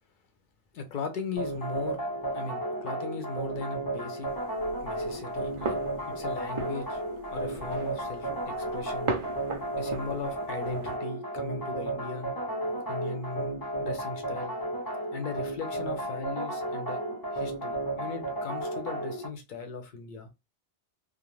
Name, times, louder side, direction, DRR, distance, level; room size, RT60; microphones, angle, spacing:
voice 1, 0.7-2.0 2.3-4.3 4.8-5.8 6.1-7.0 7.3-8.3 8.6-9.1 9.8-12.3 12.9-14.5 15.1-17.0 17.3-20.3, left 3 dB, 55° left, 0.7 m, -38 dB
sound 1, 1.4-19.3, right 1 dB, 25° left, 0.7 m, -33 dB
sound 2, 4.3-11.0, right 4 dB, 40° right, 0.5 m, -38 dB
2.4 x 2.2 x 3.0 m
omnidirectional pair, 1.0 m